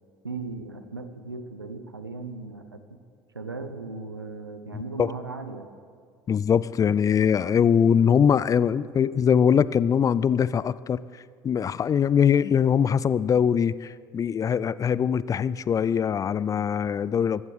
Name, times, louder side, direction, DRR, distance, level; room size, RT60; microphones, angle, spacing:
voice 1, 0.2-2.8 3.3-5.7, right 3 dB, 90° right, 9 dB, 0.8 m, -37 dB
voice 2, 6.3-11.0 11.4-17.5, left 7 dB, 30° left, 18 dB, 0.4 m, -22 dB
23.5 x 14.5 x 3.3 m, 2.2 s
figure-of-eight pair, 60°, 12 cm